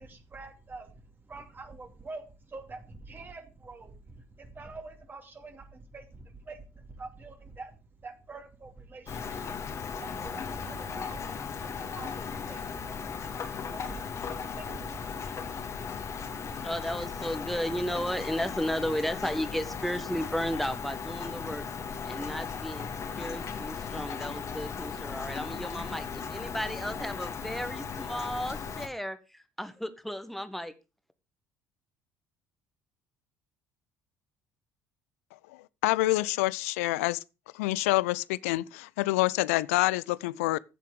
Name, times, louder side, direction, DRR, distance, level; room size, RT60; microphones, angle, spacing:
voice 1, 0.0-13.3 13.6-15.3, right 3 dB, 25° right, 2.5 m, -46 dB
Rain, 9.1-28.9, left 6 dB, 40° left, 2.1 m, -37 dB
voice 2, 16.6-21.7 22.0-22.9 23.2-30.7, equal, ahead, 1.7 m, -34 dB
voice 3, 35.8-37.2 37.5-40.6, left 19 dB, 65° left, 0.5 m, -27 dB
15.0 x 7.4 x 5.1 m
figure-of-eight pair, 55°, 8 cm